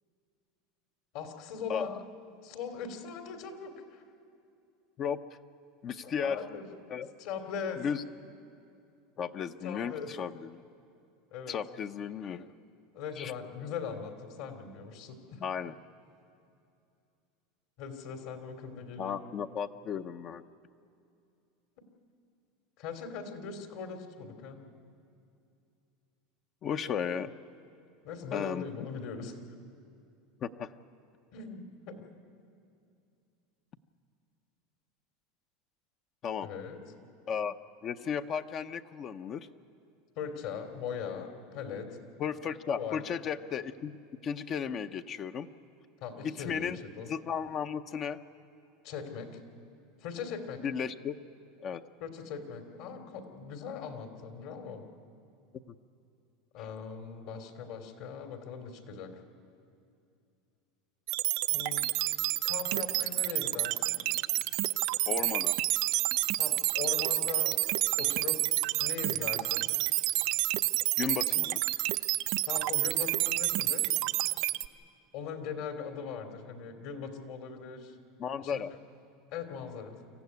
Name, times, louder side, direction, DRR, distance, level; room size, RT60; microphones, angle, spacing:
voice 1, 1.1-2.0 2.4-4.0 6.0-6.7 7.2-7.8 9.6-10.1 11.3-11.6 12.9-15.4 17.8-19.2 22.8-24.7 28.0-29.3 31.3-32.0 36.4-36.8 40.2-42.0 42.7-43.0 46.0-47.1 48.8-49.4 50.0-50.7 52.0-54.8 56.5-59.1 61.5-61.9 62.4-64.0 66.4-67.6 68.0-69.6 72.5-74.0 75.1-77.9 78.4-78.6 79.3-80.0, left 6 dB, 65° left, 5 dB, 2.9 m, -40 dB
voice 2, 5.8-6.4 6.9-7.1 7.8-8.0 9.2-10.5 11.5-12.5 13.2-13.3 15.4-15.7 19.0-20.4 26.6-27.3 28.3-28.7 30.4-30.7 36.2-36.5 37.3-37.5 37.8-39.5 42.2-45.5 46.2-48.2 50.6-51.2 51.6-51.8 65.1-65.5 71.0-71.6 78.2-78.7, left 7 dB, 35° left, 9 dB, 0.7 m, -34 dB
sound 1, 61.1-74.7, right 18 dB, 60° right, 0.5 m, -29 dB
25.0 x 15.0 x 9.6 m, 2.5 s
supercardioid pair, 130°, 0 cm